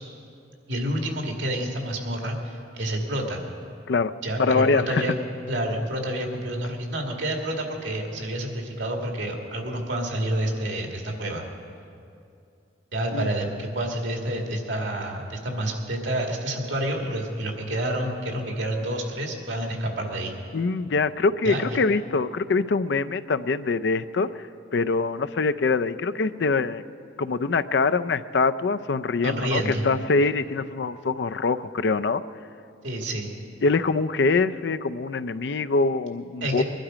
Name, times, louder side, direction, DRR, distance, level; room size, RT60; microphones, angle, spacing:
voice 1, 0.7-3.4 4.2-5.1 5.5-11.4 12.9-20.3 21.4-21.8 29.2-29.9 32.8-33.3 36.4-36.6, right 1 dB, 85° right, 1 dB, 2.1 m, -28 dB
voice 2, 3.9-5.0 13.1-13.3 20.5-24.3 24.7-26.8 27.2-32.2 33.6-36.6, left 4 dB, 70° left, 12 dB, 0.5 m, -24 dB
21.5 x 11.5 x 5.0 m, 2.5 s
head